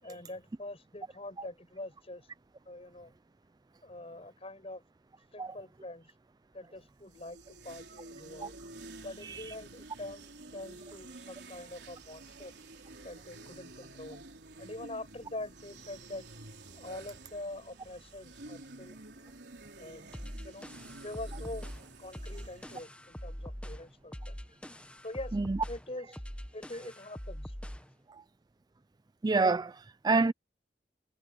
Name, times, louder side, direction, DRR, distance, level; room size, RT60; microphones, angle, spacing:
voice 1, 0.0-2.3 2.7-3.1 3.8-4.8 5.3-6.1 6.5-8.6 9.0-12.5 13.0-14.2 14.6-16.3 16.8-19.4 19.8-20.2 20.4-20.7 21.0-21.7 22.0-24.6 25.0-25.4 25.7-26.1 26.5-27.5, left 1 dB, 35° left, 7.5 m, -44 dB
sound 1, 6.9-22.8, right 2 dB, 75° right, 3.9 m, -50 dB
sound 2, 20.1-27.9, equal, 5° left, 1.2 m, -43 dB
voice 2, 29.2-30.3, right 3 dB, 25° right, 0.4 m, -27 dB
head